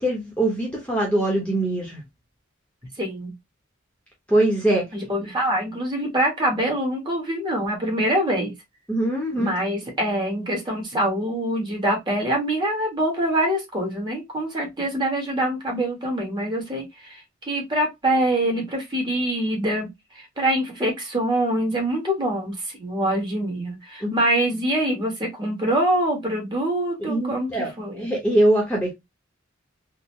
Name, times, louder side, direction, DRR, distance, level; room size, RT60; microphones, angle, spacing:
voice 1, 0.0-2.0 4.3-4.9 8.9-9.5 24.0-24.1 27.0-27.7 27.9-28.9, right 1 dB, 5° left, 1.0 m, -22 dB
voice 2, 3.0-3.3 4.9-8.5 9.3-28.0, right 1 dB, 20° right, 1.4 m, -25 dB
3.9 x 2.3 x 3.1 m
head